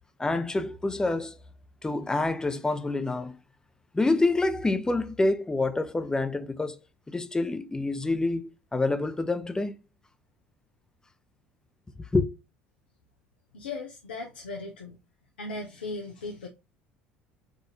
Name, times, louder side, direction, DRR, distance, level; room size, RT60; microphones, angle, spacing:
voice 1, 0.2-1.4 1.8-3.4 3.9-6.8 7.1-9.7 12.0-12.3, left 2 dB, 10° left, 0.5 m, -27 dB
voice 2, 13.5-15.0 15.4-16.5, left 3 dB, 75° left, 0.5 m, -37 dB
4.8 x 2.5 x 2.8 m
figure-of-eight pair, 65°, 6 cm